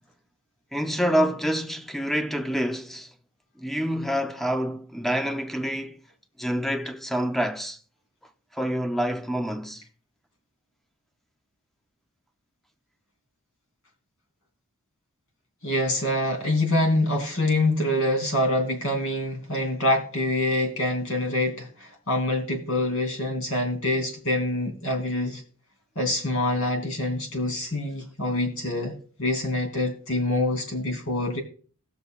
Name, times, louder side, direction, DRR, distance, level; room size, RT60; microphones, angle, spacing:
voice 1, 0.7-3.1 3.6-6.0 6.4-7.8 8.5-9.8, equal, ahead, 0.6 m, -27 dB
voice 2, 15.6-25.4 25.9-31.4, left 1 dB, 65° left, 2.9 m, -25 dB
17.5 x 7.0 x 2.4 m
head